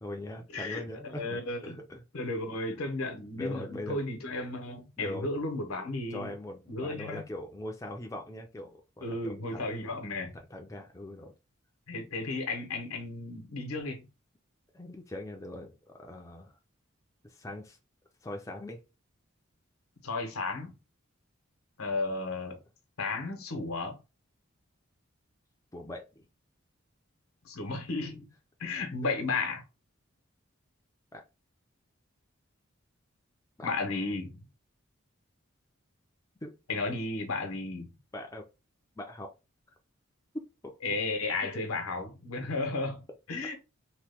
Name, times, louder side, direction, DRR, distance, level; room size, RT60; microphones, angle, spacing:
voice 1, 0.0-2.0 3.4-4.0 5.0-5.3 6.1-9.8 10.3-11.3 14.7-15.7 16.0-16.5 17.2-17.8 18.2-18.8 25.7-26.2 31.1-31.2 33.6-33.7 36.4-36.5 36.9-37.0 38.1-38.4 39.0-39.3 40.6-40.7 41.4-41.7, left 1 dB, 15° left, 0.4 m, -41 dB
voice 2, 0.5-1.8 2.1-6.3 6.7-7.2 9.0-10.3 11.9-14.1 20.0-20.7 21.8-22.6 23.0-24.0 27.4-28.3 28.6-29.6 33.6-34.4 36.7-37.9 40.8-43.5, left 3 dB, 90° left, 0.9 m, -34 dB
2.9 x 2.2 x 3.4 m
head